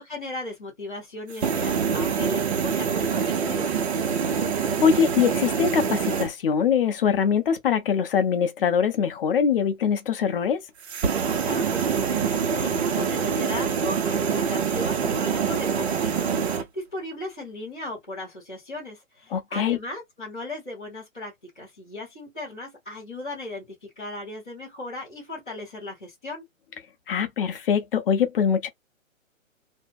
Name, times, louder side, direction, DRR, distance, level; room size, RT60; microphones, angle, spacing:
voice 1, 0.0-3.7 11.4-26.5, left 2 dB, 5° left, 0.4 m, -37 dB
sound 1, 1.3-6.3 10.8-16.6, right 6 dB, 50° right, 0.9 m, -25 dB
voice 2, 4.8-10.6 19.3-19.8 27.1-28.7, left 7 dB, 45° left, 0.6 m, -23 dB
2.5 x 2.2 x 2.4 m
hypercardioid pair, 145°, 40 cm